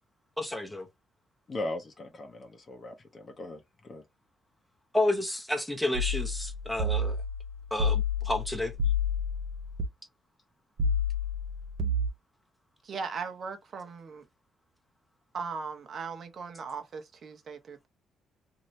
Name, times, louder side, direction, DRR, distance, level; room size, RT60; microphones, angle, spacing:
voice 1, 0.4-0.9 4.9-7.2 7.7-8.7, left 1 dB, ahead, 0.9 m, -30 dB
voice 2, 1.5-4.0, left 2 dB, 40° left, 0.8 m, -39 dB
sound 1, 5.9-9.9 10.8-12.1, left 3 dB, 80° right, 0.8 m, -29 dB
voice 3, 12.8-14.2 15.3-17.9, right 5 dB, 50° right, 1.0 m, -38 dB
2.9 x 2.7 x 3.2 m
cardioid pair, 90°, 0 cm